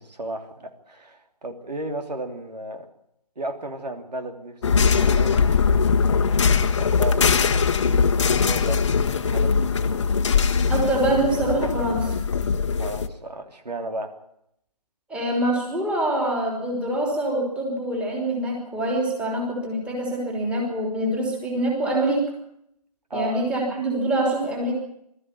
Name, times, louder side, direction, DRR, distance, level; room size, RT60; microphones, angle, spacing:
voice 1, 0.0-2.9 3.3-4.6 4.9-5.6 6.4-7.5 8.4-9.9 12.7-14.1 23.1-23.4, right 2 dB, 75° right, 5 dB, 3.3 m, -34 dB
sound 1, 4.6-13.1, left 5 dB, 45° left, 1.3 m, -21 dB
voice 2, 10.7-12.1 15.1-22.3 23.1-24.7, right 1 dB, 5° right, -1 dB, 3.2 m, -25 dB
21.0 x 13.5 x 9.7 m, 0.76 s
figure-of-eight pair, 155°, 21 cm